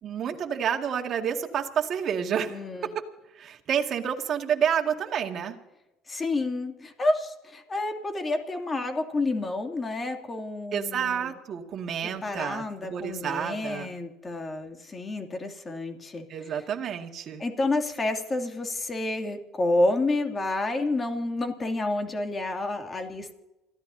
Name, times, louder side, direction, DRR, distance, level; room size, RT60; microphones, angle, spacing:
voice 1, 0.0-2.9 3.4-5.6 10.7-13.9 16.3-17.4, right 8 dB, 50° right, 3 dB, 2.1 m, -29 dB
voice 2, 2.5-2.9 6.1-11.3 12.2-16.7 17.4-23.3, left 2 dB, 25° left, 4 dB, 2.7 m, -29 dB
28.5 x 16.0 x 2.8 m, 0.99 s
supercardioid pair, 100°, 0 cm